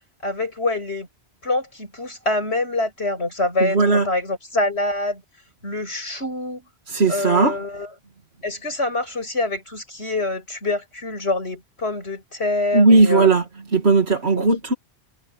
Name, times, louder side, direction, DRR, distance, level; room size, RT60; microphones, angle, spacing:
voice 1, 0.2-1.1 1.4-5.2 5.6-6.6 7.1-7.9 8.4-13.3 14.4-14.5, left 2 dB, 80° left, 7.5 m, -25 dB
voice 2, 3.6-4.1 6.9-7.6 12.7-13.4 13.7-14.7, right 3 dB, 75° right, 2.8 m, -17 dB
omnidirectional pair, 1.1 m